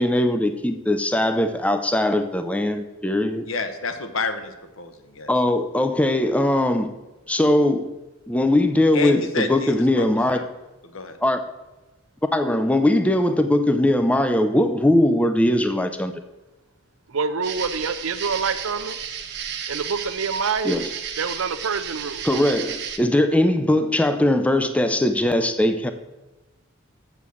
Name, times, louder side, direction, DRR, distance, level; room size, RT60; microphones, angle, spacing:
voice 1, 0.0-3.5 5.3-6.9 7.3-7.9 8.3-10.4 11.2-11.4 12.3-16.1 20.6-20.9 22.2-25.9, left 1 dB, 5° left, 9 dB, 0.4 m, -20 dB
voice 2, 3.4-5.3 8.9-10.4 10.8-11.2, left 4 dB, 60° left, 8 dB, 0.9 m, -29 dB
voice 3, 17.1-19.0 19.7-20.8 21.2-22.2, right 5 dB, 65° right, 12 dB, 0.6 m, -26 dB
sound 1, 17.4-23.0, right 8 dB, 50° right, 0.9 m, -33 dB
7.2 x 7.0 x 6.2 m, 1.1 s
head